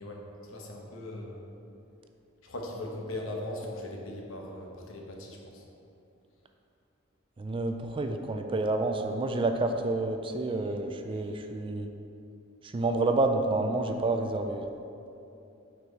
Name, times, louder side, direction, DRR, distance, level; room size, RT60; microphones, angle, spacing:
voice 1, 0.0-1.5 2.4-5.6 11.2-11.3, left 1 dB, 70° left, 0 dB, 1.0 m, -39 dB
voice 2, 7.4-11.9 12.6-14.6, right 2 dB, 25° right, 5 dB, 0.3 m, -29 dB
8.1 x 4.7 x 4.0 m, 2.8 s
head